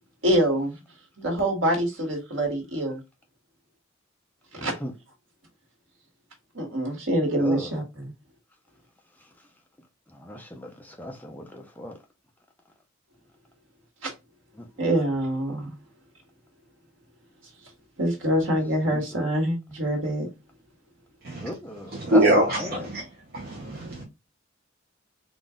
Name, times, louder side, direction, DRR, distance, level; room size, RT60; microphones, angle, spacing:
voice 1, 0.2-0.8 1.2-3.0 4.5-4.7 6.5-7.8 14.0-14.1 14.8-15.7 18.0-20.3, right 1 dB, 75° right, 1.6 m, -25 dB
voice 2, 7.4-7.7 10.1-12.0 14.6-14.9 18.8-19.2 21.4-22.9, left 1 dB, 10° left, 0.6 m, -36 dB
voice 3, 21.9-23.1 23.3-24.0, right 1 dB, 50° right, 0.8 m, -23 dB
3.9 x 2.5 x 3.6 m
head